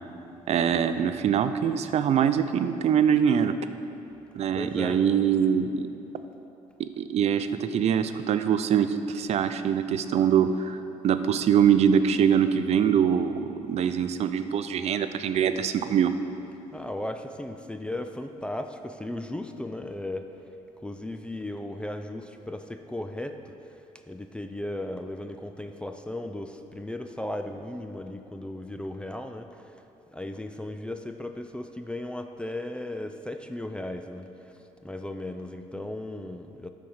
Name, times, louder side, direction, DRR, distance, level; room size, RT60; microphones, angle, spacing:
voice 1, 0.5-3.5 4.3-5.9 6.8-10.8 11.0-16.1, right 8 dB, 55° right, 10 dB, 0.5 m, -23 dB
voice 2, 4.5-5.5 16.7-20.3 20.8-23.5 24.1-29.7 30.1-34.5 34.8-36.7, left 1 dB, 10° left, 7 dB, 0.4 m, -36 dB
12.5 x 4.6 x 5.6 m, 2.9 s
cardioid pair, 90°, 13 cm